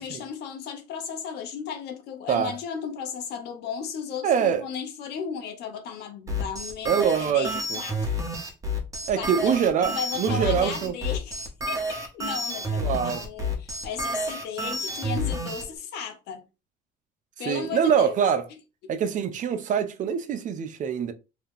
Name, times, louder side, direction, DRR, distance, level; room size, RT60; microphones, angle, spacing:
voice 1, 0.0-8.1 9.2-9.6 9.9-16.4 17.4-18.3, left 7 dB, 80° left, 0.9 m, -35 dB
voice 2, 4.2-4.7 6.9-7.5 9.1-9.9 10.2-10.9 12.8-13.2 17.5-18.4 18.9-21.1, right 8 dB, 50° right, 0.5 m, -24 dB
sound 1, 6.3-15.6, equal, 20° right, 1.0 m, -30 dB
2.8 x 2.3 x 3.5 m
cardioid pair, 110°, 17 cm